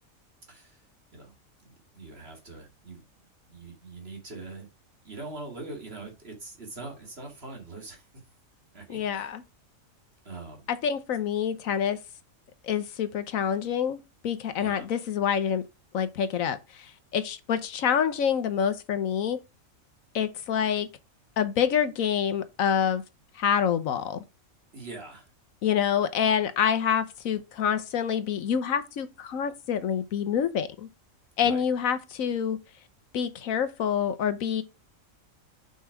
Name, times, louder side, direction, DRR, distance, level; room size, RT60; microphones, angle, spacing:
voice 1, 0.5-0.8 1.1-1.3 1.6-3.0 3.5-4.7 5.0-8.1 8.7-9.3 10.2-10.7 14.6-14.9 24.7-25.3 31.4-31.6, right 3 dB, 45° right, 2.5 m, -42 dB
voice 2, 8.9-9.4 10.7-12.0 12.6-14.0 14.2-15.6 15.9-19.4 20.1-20.9 21.4-23.0 23.3-24.2 25.6-30.9 31.4-32.6 33.1-34.6, left 8 dB, 85° left, 1.3 m, -27 dB
5.6 x 5.4 x 4.7 m
omnidirectional pair, 1.4 m